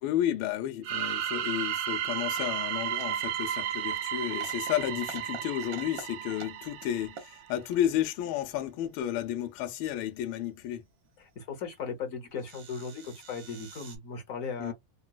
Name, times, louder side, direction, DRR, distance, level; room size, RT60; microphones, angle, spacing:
voice 1, 0.0-10.8 14.6-14.7, left 11 dB, 80° left, 1.4 m, -32 dB
sound 1, 0.8-7.5, right 10 dB, 90° right, 1.5 m, -33 dB
sound 2, 1.6-1.7 1.9-3.3 3.6-3.7 4.1-4.7 5.0-6.1 6.3-6.9 7.1-7.8 9.6-9.9 11.0-11.1 11.4-11.5 11.9-12.0 12.3-14.0, right 6 dB, 60° right, 1.0 m, -47 dB
voice 2, 11.2-14.7, left 5 dB, 55° left, 1.0 m, -37 dB
3.9 x 2.3 x 2.2 m
omnidirectional pair, 2.3 m